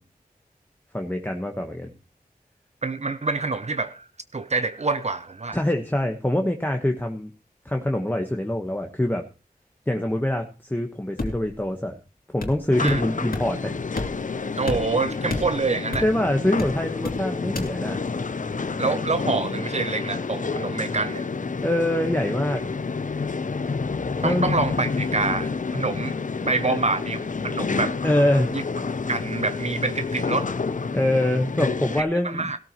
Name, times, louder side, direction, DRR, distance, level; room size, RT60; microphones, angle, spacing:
voice 1, 0.9-1.9 5.5-7.3 7.6-9.2 9.9-11.9 12.3-13.8 16.0-18.0 21.6-22.6 24.2-24.5 26.7-26.8 28.0-28.5 30.9-32.5, left 1 dB, 15° left, 1.3 m, -24 dB
voice 2, 2.8-4.1 4.3-5.6 12.8-13.0 14.6-16.0 18.8-21.3 24.2-26.2 26.4-28.0 28.5-28.6 29.1-30.5 32.0-32.6, right 3 dB, 45° right, 0.7 m, -26 dB
sound 1, 11.2-11.6 12.4-13.1 13.3-13.5 14.0-14.3 14.7-16.2 16.6-17.2 17.5-17.7, left 2 dB, 75° left, 2.7 m, -31 dB
sound 2, 12.7-32.0, left 4 dB, 60° left, 0.8 m, -29 dB
16.5 x 13.0 x 3.1 m
wide cardioid pair, 55°, 15 cm